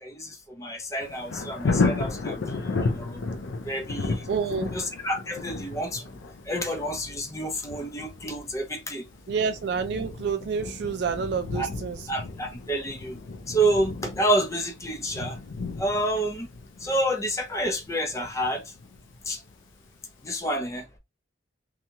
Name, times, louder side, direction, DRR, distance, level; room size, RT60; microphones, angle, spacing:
voice 1, 0.0-2.6 2.9-3.2 3.6-4.3 4.7-6.1 6.5-9.1 11.5-11.7 12.1-13.2 13.5-15.4 15.8-16.5 16.8-18.7 19.3-19.4 20.2-20.9, right 1 dB, 15° left, 0.6 m, -29 dB
Thunder, 1.0-19.8 20.2-20.3, left 3 dB, 85° left, 0.5 m, -34 dB
voice 2, 4.3-4.7 6.5-6.6 9.3-12.1, right 6 dB, 60° right, 0.3 m, -28 dB
2.9 x 2.3 x 2.6 m
head